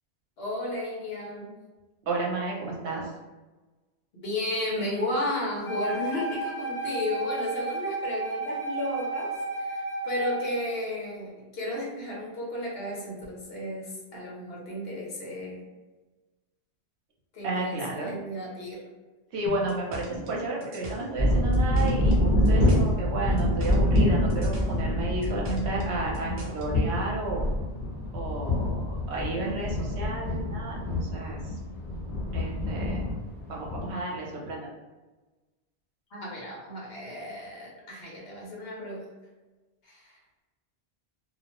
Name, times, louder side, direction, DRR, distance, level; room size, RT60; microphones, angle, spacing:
voice 1, 0.4-1.5 4.1-15.7 17.3-18.8 36.1-39.0 39.8-40.2, left 1 dB, 65° left, -4 dB, 1.1 m, -33 dB
voice 2, 2.1-3.1 17.4-18.1 19.3-27.4 28.1-31.4 32.3-33.1 33.5-34.7, right 2 dB, 75° right, -2 dB, 1.0 m, -32 dB
Wind instrument woodwind instrument, 5.6-10.7, right 3 dB, 80° left, 1.4 m, -33 dB
sound 1, 19.5-22.2 22.5-24.0 24.3-26.7, right 1 dB, 50° right, 0.7 m, -39 dB
sound 2, 21.2-33.9, left 1 dB, 20° left, 1.2 m, -26 dB
2.8 x 2.0 x 2.9 m, 1.2 s
omnidirectional pair, 1.1 m